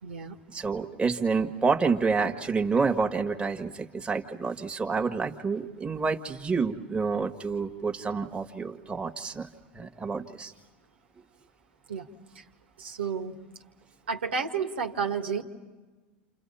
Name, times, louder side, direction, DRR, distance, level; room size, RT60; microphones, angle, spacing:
voice 1, 0.0-0.4 11.9-12.1 12.4-12.5 12.8-13.4 14.1-15.4, right 6 dB, 85° right, 4 dB, 1.8 m, -31 dB
voice 2, 0.5-9.5 9.7-10.5, right 4 dB, 15° right, 3 dB, 1.7 m, -28 dB
29.5 x 28.5 x 5.6 m, 1.2 s
hypercardioid pair, 90°, 6 cm